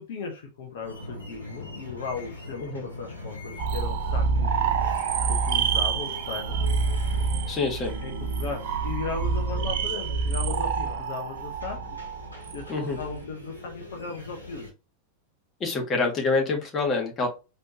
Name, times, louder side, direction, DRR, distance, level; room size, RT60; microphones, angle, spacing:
voice 1, 0.0-4.7 5.3-6.6 8.0-11.8 12.5-14.7, left 4 dB, 55° left, 1 dB, 1.0 m, -36 dB
sound 1, 0.8-14.7, left 2 dB, 80° left, 1.6 m, -42 dB
sound 2, 3.6-13.2, right 5 dB, 50° right, 0.6 m, -27 dB
voice 2, 7.5-7.9 12.7-13.0 15.6-17.3, left 3 dB, 25° left, 1 dB, 1.6 m, -26 dB
4.3 x 3.3 x 2.9 m, 0.28 s
figure-of-eight pair, 90°, 0 cm